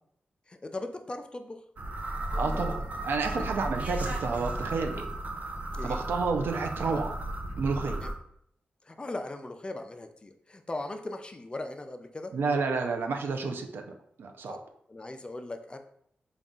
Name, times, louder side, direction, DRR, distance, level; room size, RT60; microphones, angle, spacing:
voice 1, 0.5-1.6 2.3-2.9 3.4-3.5 5.7-6.0 6.9-7.0 8.0-8.1 8.8-12.3 14.5-14.6 14.9-15.8, left 2 dB, 25° left, 6 dB, 0.4 m, -39 dB
sound 1, 1.8-8.1, right 1 dB, 45° right, 0.6 m, -34 dB
voice 2, 2.4-2.8 3.0-5.1 5.8-7.1 7.6-8.0 12.3-14.6, right 4 dB, 90° right, 5 dB, 0.5 m, -30 dB
3.9 x 2.4 x 3.6 m, 0.69 s
wide cardioid pair, 95°, 4 cm